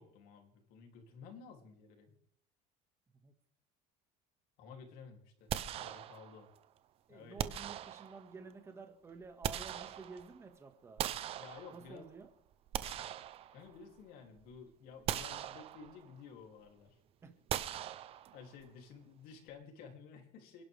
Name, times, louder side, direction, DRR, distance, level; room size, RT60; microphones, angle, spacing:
voice 1, 0.0-2.2 4.6-6.5 7.1-7.5 11.4-12.0 13.5-17.0 18.3-20.6, left 5 dB, 55° left, 4 dB, 3.0 m, -53 dB
sound 1, 5.5-6.5 7.4-8.4 9.1-10.4 11.0-12.1 12.5-14.0 14.4-14.5 15.1-16.1 17.5-18.6, right 11 dB, 35° right, 0.7 m, -40 dB
voice 2, 7.1-11.0 11.7-12.3 17.2-17.3, right 4 dB, 15° right, 5 dB, 1.8 m, -51 dB
29.0 x 11.0 x 3.5 m, 0.67 s
cardioid pair, 175°, 18 cm